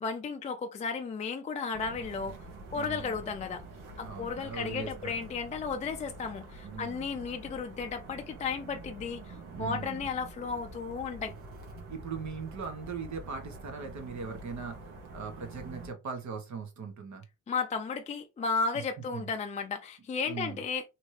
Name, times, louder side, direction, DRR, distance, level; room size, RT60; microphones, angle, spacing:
voice 1, 0.0-2.4 2.7-3.6 4.0-11.3 17.5-20.8, left 5 dB, 25° left, 0.3 m, -34 dB
sound 1, 1.7-15.9, right 2 dB, 90° right, 1.1 m, -46 dB
voice 2, 2.7-3.2 4.0-5.2 6.6-7.1 9.5-10.1 11.9-14.8 15.1-17.2 19.1-19.3 20.3-20.6, right 5 dB, 60° right, 1.1 m, -40 dB
2.9 x 2.6 x 3.1 m
cardioid pair, 125°, 31 cm